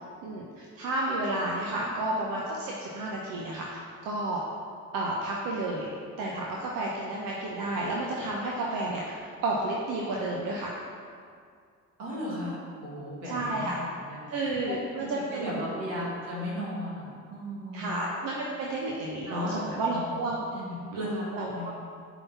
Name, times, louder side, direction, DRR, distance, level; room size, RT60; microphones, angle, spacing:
voice 1, 0.2-4.4 4.9-5.9 6.2-10.7 13.2-13.8 14.3-15.8 17.7-20.4 20.9-21.0 21.3-21.7, right 2 dB, 60° right, -3 dB, 1.1 m, -31 dB
voice 2, 12.0-14.2 14.7-18.0 19.3-20.1 20.5-21.7, left 1 dB, 80° right, -5 dB, 1.9 m, -36 dB
9.0 x 4.1 x 5.7 m, 2.2 s
figure-of-eight pair, 40°, 37 cm